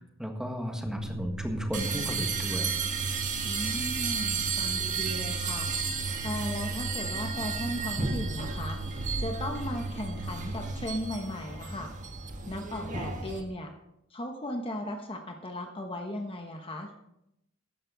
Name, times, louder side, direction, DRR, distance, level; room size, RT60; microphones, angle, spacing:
voice 1, 0.0-2.7, equal, 5° right, 3 dB, 1.6 m, -34 dB
sound 1, 0.9-10.9, right 2 dB, 65° right, 3.4 m, -38 dB
sound 2, 1.7-13.4, right 5 dB, 40° right, 1.5 m, -33 dB
voice 2, 3.4-11.9 12.5-13.7 14.1-16.9, left 1 dB, 25° left, 3 dB, 1.1 m, -36 dB
14.0 x 11.0 x 3.9 m, 0.84 s
head